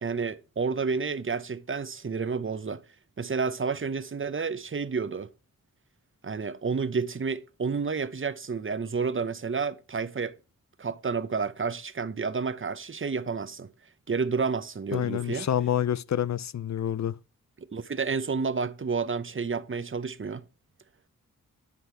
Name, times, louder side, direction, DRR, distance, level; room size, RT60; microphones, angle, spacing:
voice 1, 0.0-2.8 3.2-5.3 6.2-10.3 10.8-13.7 14.1-15.5 17.6-20.4, right 5 dB, 35° right, 0.9 m, -30 dB
voice 2, 14.9-17.1, left 10 dB, 55° left, 0.6 m, -28 dB
10.5 x 5.7 x 4.6 m
cardioid pair, 50°, 33 cm